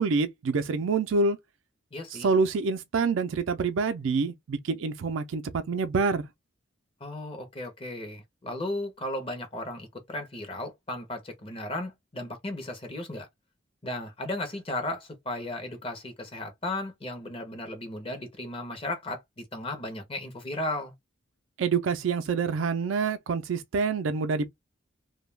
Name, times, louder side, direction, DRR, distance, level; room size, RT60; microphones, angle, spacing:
voice 1, 0.0-1.4 2.2-6.3 21.6-24.5, right 4 dB, 90° right, 0.4 m, -26 dB
voice 2, 1.9-2.3 7.0-13.3 13.8-20.9, left 1 dB, 30° left, 0.7 m, -35 dB
2.2 x 2.2 x 3.2 m
head